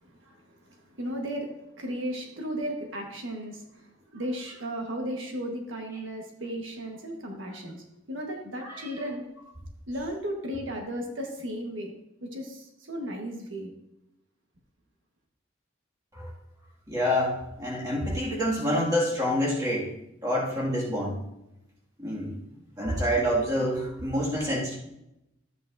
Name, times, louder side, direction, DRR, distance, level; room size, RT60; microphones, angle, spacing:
voice 1, 0.0-9.2 9.9-11.9 12.2-13.7, equal, 75° right, 1 dB, 1.4 m, -35 dB
voice 2, 16.9-19.9 20.2-21.2 22.0-22.4 22.8-24.8, equal, 20° right, -5 dB, 2.1 m, -27 dB
12.5 x 8.4 x 2.6 m, 0.87 s
head